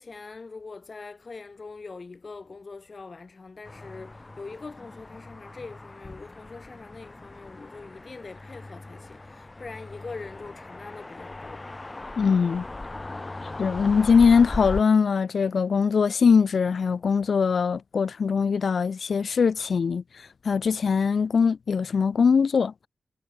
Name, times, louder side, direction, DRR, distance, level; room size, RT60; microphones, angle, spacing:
voice 1, 0.0-11.7, left 4 dB, 50° left, 4.3 m, -42 dB
sound 1, 3.6-14.8, left 2 dB, 30° left, 5.2 m, -39 dB
voice 2, 12.2-12.7 13.6-20.0 20.4-22.9, left 5 dB, 75° left, 0.8 m, -21 dB
wide cardioid pair, 85°, 0 cm